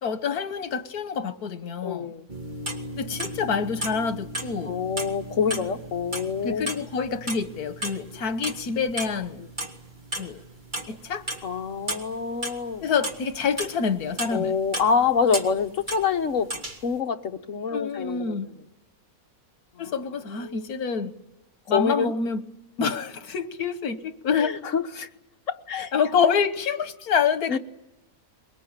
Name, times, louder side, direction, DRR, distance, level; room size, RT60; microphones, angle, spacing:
voice 1, 0.0-2.1 3.0-4.7 6.4-9.4 10.2-10.4 10.9-11.2 12.8-14.6 17.7-18.5 19.8-21.1 21.7-22.4 22.8-24.6 25.9-27.5, left 6 dB, 80° left, 1.8 m, -27 dB
voice 2, 1.8-2.2 4.7-6.7 9.4-9.5 11.4-12.8 14.3-16.5 16.8-18.5 19.7-19.9 20.3-20.7 21.7-22.1 22.8-22.9 24.3-25.1 25.5-25.9 27.5-27.6, left 6 dB, 60° left, 1.6 m, -26 dB
sound 1, 2.3-16.1 16.4-16.9, right 1 dB, 30° right, 2.2 m, -35 dB
23.5 x 21.5 x 8.9 m
omnidirectional pair, 1.6 m